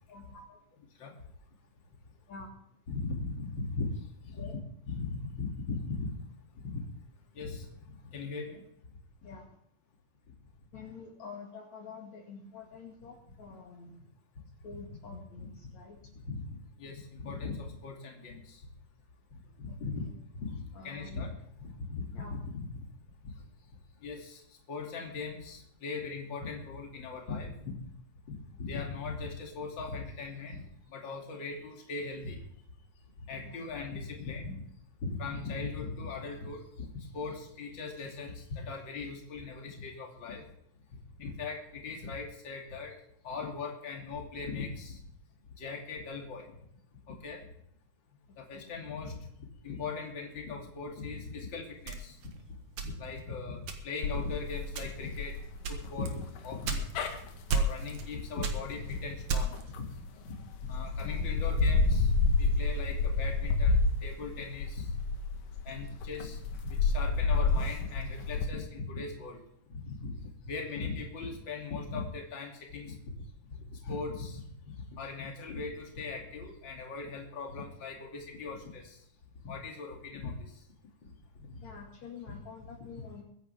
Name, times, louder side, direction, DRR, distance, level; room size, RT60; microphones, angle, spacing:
voice 1, 0.1-0.6 2.3-2.5 4.3-4.5 9.2-9.6 10.7-14.0 14.6-16.0 19.9-20.1 20.7-21.3 22.1-22.4 23.4-23.5 31.1-31.2 33.4-33.7 48.5-48.7 61.0-61.3 81.6-83.2, left 4 dB, 60° left, -1 dB, 3.2 m, -48 dB
voice 2, 2.9-4.5 4.9-6.1 6.5-6.8 7.3-7.7 8.0-8.6 10.7-10.8 14.7-14.8 16.1-16.5 16.8-18.6 19.6-20.1 20.3-22.0 22.4-22.7 24.0-24.4 24.7-27.7 28.6-30.6 30.9-32.4 33.3-34.6 35.1-40.5 41.2-43.0 43.2-45.0 45.6-46.5 47.1-47.4 48.4-49.3 49.6-52.3 52.8-55.4 55.7-56.9 57.5-59.9 60.2-60.3 60.7-64.9 65.6-69.4 69.7-73.0 73.5-79.0 79.4-80.5 81.5-81.6, left 4 dB, 35° left, 0 dB, 3.2 m, -39 dB
sound 1, 51.9-53.2 53.7-54.1 54.7-55.2 55.6-57.2 57.5-58.1 58.4-59.7, right 4 dB, 65° right, 2.8 m, -33 dB
sound 2, 54.0-60.0 60.5-68.5, left 3 dB, 75° left, 3.0 m, -30 dB
23.0 x 10.5 x 3.5 m, 0.72 s
omnidirectional pair, 3.8 m